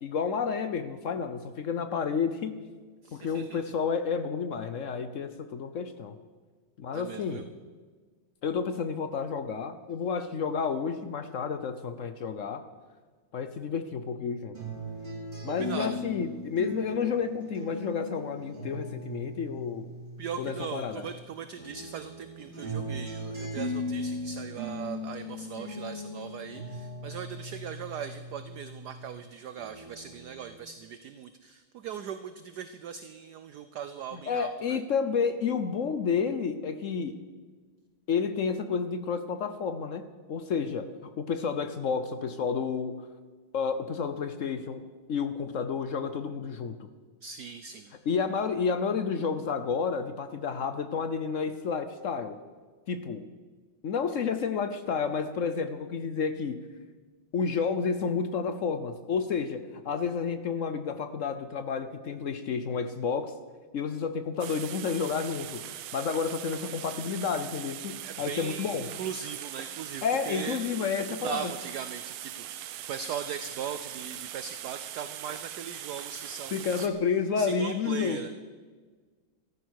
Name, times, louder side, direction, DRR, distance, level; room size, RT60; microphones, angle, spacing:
voice 1, 0.0-2.6 3.1-6.1 6.8-7.5 8.4-12.6 13.3-14.6 15.4-19.9 20.4-21.1 34.1-37.2 38.1-40.0 40.3-40.9 41.2-43.0 43.5-44.8 45.1-46.9 48.1-52.4 52.9-53.3 53.8-56.6 57.3-63.3 63.7-65.7 65.9-68.9 70.0-71.5 76.5-78.3, left 6 dB, 70° left, 10 dB, 0.7 m, -30 dB
voice 2, 3.0-3.6 6.9-7.4 15.5-16.0 20.2-34.8 47.2-47.9 68.0-70.6 71.1-76.9 77.4-78.3, right 7 dB, 65° right, 11 dB, 1.1 m, -39 dB
sound 1, 14.5-21.2 21.6-29.2 29.6-30.5, equal, 30° right, 6.7 m, -38 dB
sound 2, 64.4-76.9, right 12 dB, 85° right, 1.6 m, -41 dB
14.0 x 13.0 x 6.4 m, 1.4 s
omnidirectional pair, 2.3 m